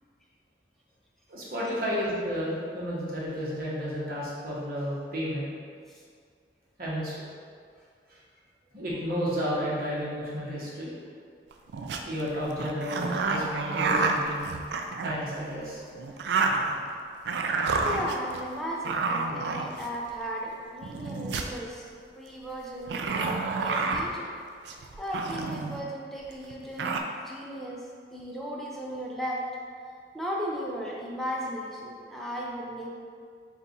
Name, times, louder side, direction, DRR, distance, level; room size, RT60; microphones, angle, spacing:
voice 1, 1.3-5.5 6.8-7.2 8.1-8.2 8.7-10.9 12.0-14.5 15.0-15.8, equal, 55° right, -7 dB, 1.0 m, -32 dB
sound 1, 11.5-12.0 12.6-15.4 15.9-16.9 17.3-18.4 18.8-20.1 20.8-21.6 22.8-24.1 24.6-25.8 26.2-26.3 26.5-27.0, right 4 dB, 70° right, 0.3 m, -29 dB
voice 2, 17.8-21.9 22.2-24.3 25.0-27.9 28.1-29.4 29.8-32.9, equal, ahead, -4 dB, 0.4 m, -36 dB
4.0 x 2.4 x 3.9 m, 2.1 s
head